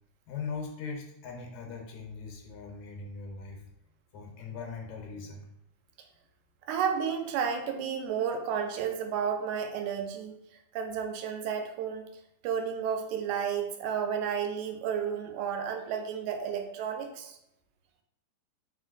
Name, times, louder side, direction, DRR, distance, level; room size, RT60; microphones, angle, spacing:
voice 1, 0.3-3.6 4.1-5.5, left 5 dB, 80° left, 1 dB, 2.2 m, -40 dB
voice 2, 6.7-10.4 10.7-12.1 12.4-17.4, right 7 dB, 85° right, 5 dB, 2.0 m, -32 dB
4.4 x 4.4 x 2.6 m, 0.82 s
omnidirectional pair, 3.4 m